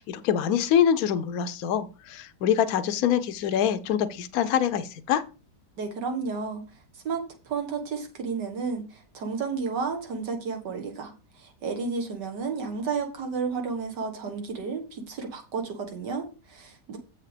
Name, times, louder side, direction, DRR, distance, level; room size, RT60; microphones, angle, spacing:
voice 1, 0.0-5.2, left 9 dB, 65° left, 10 dB, 1.2 m, -25 dB
voice 2, 5.8-6.6 6.9-17.0, right 5 dB, 80° right, 4 dB, 2.0 m, -32 dB
7.8 x 5.7 x 5.0 m, 0.32 s
omnidirectional pair, 1.8 m